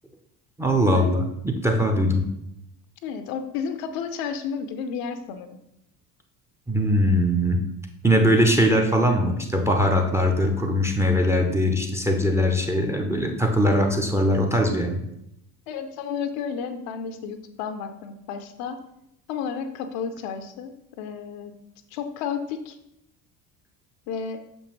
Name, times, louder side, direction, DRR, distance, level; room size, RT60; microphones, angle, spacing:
voice 1, 0.6-2.3 6.7-7.6 8.0-15.0, equal, 5° right, 4 dB, 0.6 m, -21 dB
voice 2, 3.0-5.6 14.5-14.8 15.7-18.8 19.3-21.5 21.9-22.8 24.1-24.4, left 6 dB, 45° left, 8 dB, 0.6 m, -32 dB
6.6 x 5.3 x 3.0 m, 0.82 s
figure-of-eight pair, 55°, 49 cm